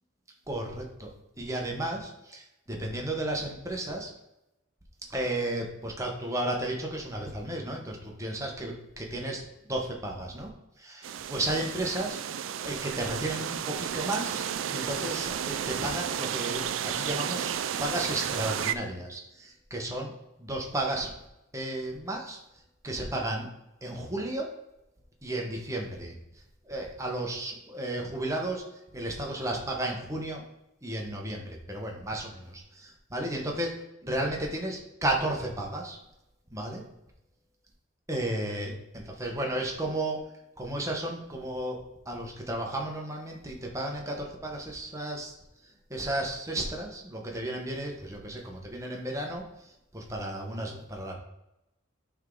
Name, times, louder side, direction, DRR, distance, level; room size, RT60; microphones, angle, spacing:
voice 1, 0.5-4.1 5.1-10.5 10.8-12.2 12.6-20.1 20.4-21.1 21.5-22.4 22.8-23.5 23.8-24.5 25.2-26.2 26.6-28.6 28.9-30.4 30.8-33.7 34.0-36.0 36.5-36.8 38.1-40.2 40.6-45.3 45.6-51.1, right 1 dB, 15° right, 0 dB, 1.2 m, -33 dB
sound 1, 11.0-18.7, right 9 dB, 75° right, 0.4 m, -32 dB
9.2 x 3.6 x 3.9 m, 0.89 s
head